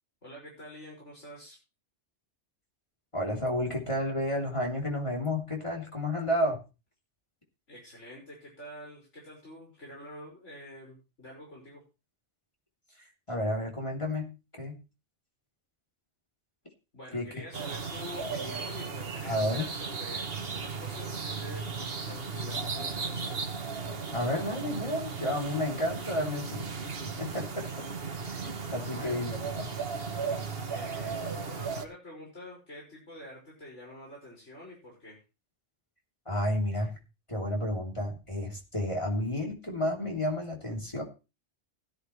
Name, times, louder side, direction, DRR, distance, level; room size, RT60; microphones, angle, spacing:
voice 1, 0.2-1.6 7.7-11.8 16.9-23.5 28.8-29.3 30.7-35.2, left 1 dB, 90° left, -3 dB, 5.9 m, -47 dB
voice 2, 3.1-6.6 13.3-14.3 14.6-14.7 17.1-17.3 19.2-19.7 24.1-26.7 27.0-27.8 28.4-29.7 36.2-36.9 37.3-41.0, left 1 dB, 25° left, -1 dB, 3.3 m, -31 dB
sound 1, 17.5-31.8, right 5 dB, 55° right, 1.5 m, -36 dB
16.0 x 12.0 x 3.2 m, 0.30 s
omnidirectional pair, 1.2 m